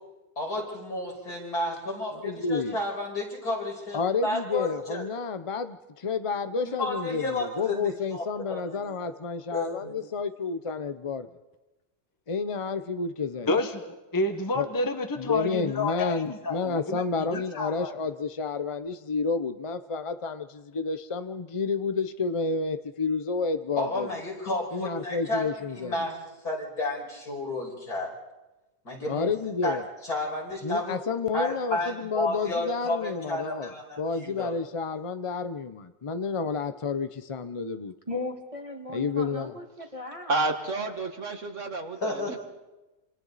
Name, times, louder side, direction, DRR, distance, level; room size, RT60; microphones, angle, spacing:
voice 1, 0.4-5.0 6.7-8.2 8.5-8.6 9.5-9.9 23.8-25.5 25.7-28.1 28.8-29.3 29.6-29.8 30.0-31.0 31.3-34.5 42.0-42.4, left 2 dB, 70° left, -1 dB, 6.0 m, -31 dB
voice 2, 2.1-2.8 3.9-11.3 12.3-13.5 14.6-14.7 15.2-24.1 24.7-25.9 29.1-29.8 30.6-33.7 34.0-37.9 38.9-39.5, left 4 dB, 45° left, 10 dB, 0.4 m, -30 dB
voice 3, 13.5-13.8 14.1-17.0 17.3-17.9, left 2 dB, 15° left, 5 dB, 1.3 m, -29 dB
voice 4, 38.1-40.3, left 2 dB, 20° right, 3 dB, 1.9 m, -37 dB
voice 5, 40.3-42.4, right 2 dB, 50° right, 5 dB, 2.0 m, -30 dB
27.5 x 27.5 x 4.1 m, 1.1 s
omnidirectional pair, 1.7 m